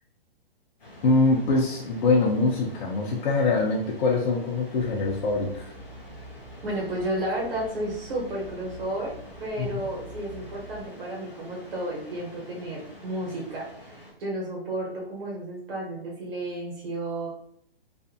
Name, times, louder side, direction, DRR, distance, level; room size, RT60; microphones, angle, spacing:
sound 1, 0.8-14.1, left 1 dB, 25° left, 1.2 m, -48 dB
voice 1, 1.0-5.7 9.6-9.9, left 3 dB, 50° left, -3 dB, 0.6 m, -24 dB
sound 2, 4.7-10.9, right 1 dB, 20° right, 0.4 m, -46 dB
voice 2, 6.6-17.3, right 1 dB, 65° right, -3 dB, 1.0 m, -32 dB
2.6 x 2.5 x 2.4 m, 0.66 s
hypercardioid pair, 150°, 31 cm